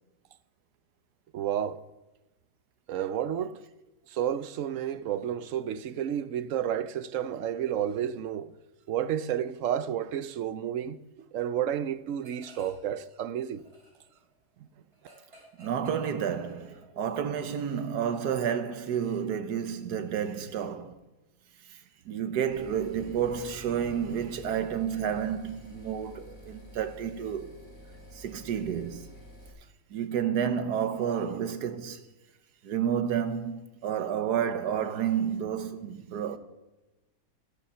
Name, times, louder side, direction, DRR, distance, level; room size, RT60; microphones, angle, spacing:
voice 1, 1.3-1.8 2.9-3.6 4.1-8.5 8.9-13.6, right 10 dB, 65° right, 0.9 m, -31 dB
sound 1, 12.2-12.9 13.2-17.1, right 1 dB, 45° right, 4.7 m, -55 dB
voice 2, 15.6-20.9 21.7-21.8 22.0-27.5 28.1-29.1 29.9-32.0 32.6-36.4, right 8 dB, 90° right, 1.5 m, -30 dB
sound 2, 22.5-29.5, left 1 dB, 35° left, 4.9 m, -49 dB
15.0 x 11.5 x 5.6 m
omnidirectional pair, 1.7 m